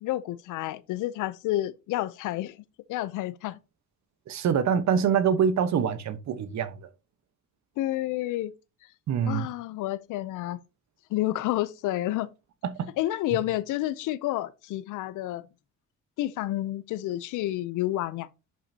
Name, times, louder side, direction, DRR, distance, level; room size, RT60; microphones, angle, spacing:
voice 1, 0.0-2.6 2.9-3.6 7.8-8.5 9.3-10.6 11.1-12.3 13.0-15.4 16.2-18.3, left 15 dB, 90° left, 0.6 m, -30 dB
voice 2, 4.3-6.9 9.1-9.5 12.6-12.9, right 7 dB, 65° right, 1.1 m, -25 dB
11.0 x 5.6 x 2.8 m
cardioid pair, 90°, 30 cm